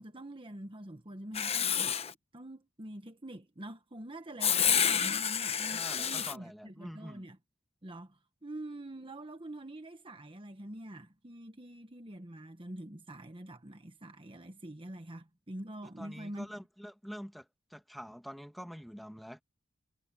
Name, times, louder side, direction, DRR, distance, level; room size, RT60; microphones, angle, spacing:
voice 1, 0.0-2.0 2.3-7.4 7.8-16.5, right 1 dB, 25° right, 1.3 m, -45 dB
Writing, 1.3-2.1 4.4-6.3, left 8 dB, 30° left, 1.0 m, -29 dB
voice 2, 5.7-7.3 15.8-19.4, equal, ahead, 1.7 m, -46 dB
head